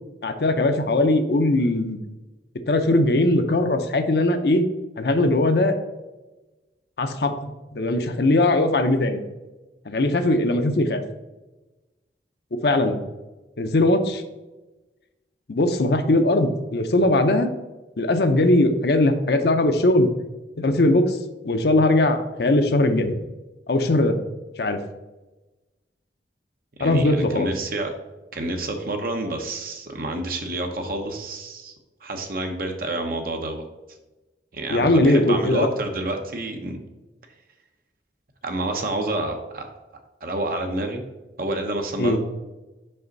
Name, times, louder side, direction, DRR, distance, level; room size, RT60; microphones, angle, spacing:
voice 1, 0.2-2.0 2.7-4.7 5.0-5.8 7.0-9.2 9.9-11.0 12.6-13.0 13.6-14.2 15.5-17.5 18.0-20.1 20.6-21.2 21.4-23.1 23.7-24.1 24.6-24.8 26.8-27.5 34.7-35.7 42.0-42.2, left 2 dB, 65° left, 7 dB, 0.6 m, -20 dB
voice 2, 26.8-27.9 28.3-31.7 32.0-33.6 34.5-36.8 38.4-39.7 40.2-41.0 41.4-42.2, right 2 dB, 50° right, 4 dB, 0.9 m, -28 dB
5.6 x 5.5 x 3.9 m, 1.1 s
head